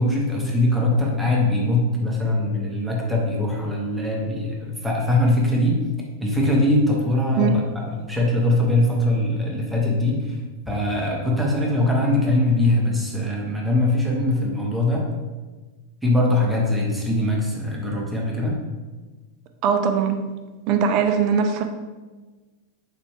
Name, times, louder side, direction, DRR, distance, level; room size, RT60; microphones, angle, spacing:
voice 1, 0.0-5.8 6.2-10.4 10.7-15.1 16.0-18.6, left 1 dB, 5° right, -3 dB, 0.8 m, -22 dB
voice 2, 19.6-20.2 20.7-21.6, right 6 dB, 40° right, 6 dB, 0.4 m, -20 dB
4.1 x 2.6 x 3.2 m, 1.3 s
figure-of-eight pair, 90°, 0 cm